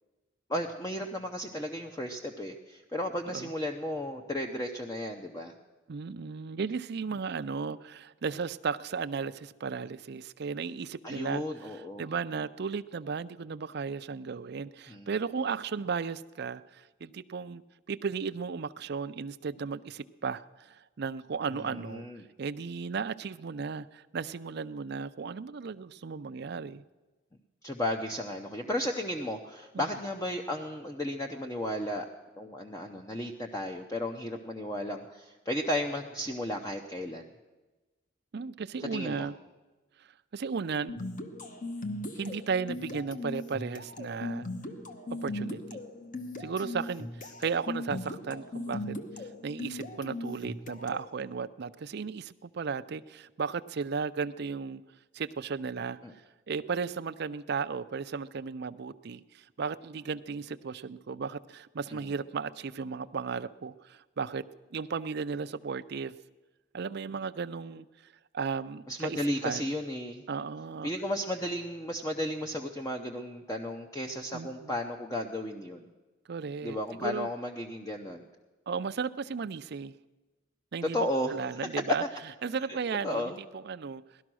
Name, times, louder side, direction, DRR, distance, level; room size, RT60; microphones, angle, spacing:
voice 1, 0.5-5.5 11.0-12.1 14.9-15.1 21.5-22.3 27.6-32.1 32.4-37.3 38.9-39.3 56.0-56.1 61.9-62.1 68.9-70.2 70.8-75.9 76.6-78.2 80.8-81.3 81.6-82.0 82.7-83.4, left 1 dB, 15° left, 2 dB, 0.7 m, -34 dB
voice 2, 5.9-11.4 11.7-17.6 17.9-22.1 22.4-26.8 29.7-29.9 38.3-39.4 40.3-41.0 42.1-44.5 45.2-45.8 46.4-54.8 55.1-56.0 56.5-64.4 64.7-66.1 66.7-67.9 68.3-69.7 70.3-70.9 74.3-74.7 76.3-77.3 78.7-79.9 80.7-82.0 82.4-84.0, right 5 dB, 55° right, 14 dB, 0.5 m, -35 dB
sound 1, 40.9-51.1, left 2 dB, 40° left, 1.1 m, -39 dB
18.0 x 12.5 x 6.2 m, 1.2 s
head